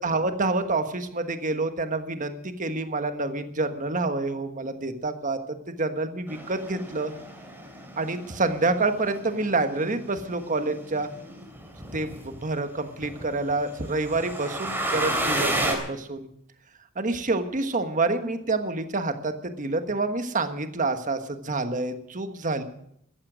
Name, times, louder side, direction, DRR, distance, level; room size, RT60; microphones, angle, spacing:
voice 1, 0.0-5.4 5.7-7.1 8.0-11.1 11.9-16.3 16.9-22.6, right 3 dB, 35° right, 8 dB, 1.4 m, -27 dB
sound 1, 6.3-12.4 13.0-15.7, right 1 dB, 10° right, 3.2 m, -32 dB
14.5 x 14.0 x 6.3 m, 0.72 s
head